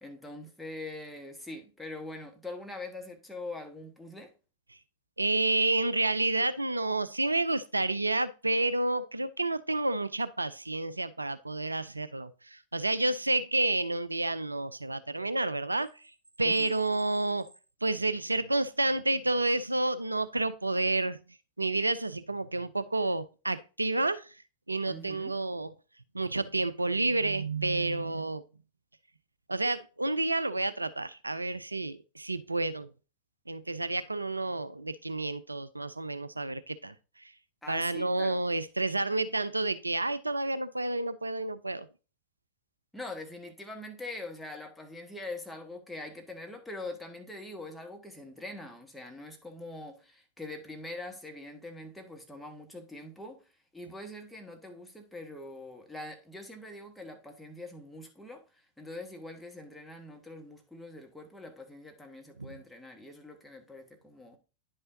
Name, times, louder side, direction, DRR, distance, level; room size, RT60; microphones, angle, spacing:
voice 1, 0.0-4.3 16.4-16.8 24.8-25.4 37.6-38.4 42.9-64.4, left 2 dB, 5° left, 1.3 m, -43 dB
voice 2, 5.2-16.1 16.4-17.5 17.8-21.2 21.6-24.4 24.7-25.7 26.1-28.4 29.5-32.9 33.5-37.3 37.7-41.9 62.4-62.5, right 2 dB, 80° right, 0.3 m, -30 dB
9.9 x 5.4 x 2.7 m
figure-of-eight pair, 90°, 0 cm